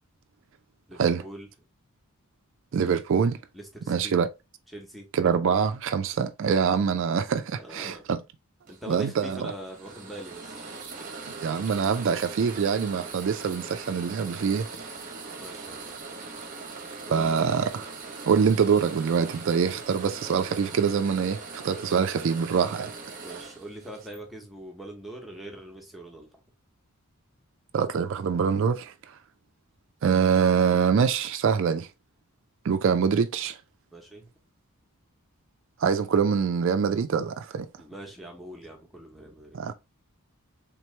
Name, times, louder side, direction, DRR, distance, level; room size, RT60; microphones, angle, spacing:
voice 1, 0.9-1.5 3.5-4.1 4.7-5.1 7.5-8.0 8.7-10.6 15.4-15.9 17.0-17.4 23.2-26.3 33.9-34.3 37.8-39.6, right 1 dB, ahead, 0.9 m, -42 dB
voice 2, 2.7-3.4 3.9-4.3 5.1-8.2 8.9-9.5 11.4-14.7 17.1-17.9 18.3-22.9 27.7-29.2 30.0-31.9 32.6-33.6 35.8-37.7 39.5-39.7, right 6 dB, 55° right, 0.3 m, -24 dB
sound 1, 8.7-24.2, right 4 dB, 40° right, 0.8 m, -41 dB
3.6 x 3.0 x 3.2 m
head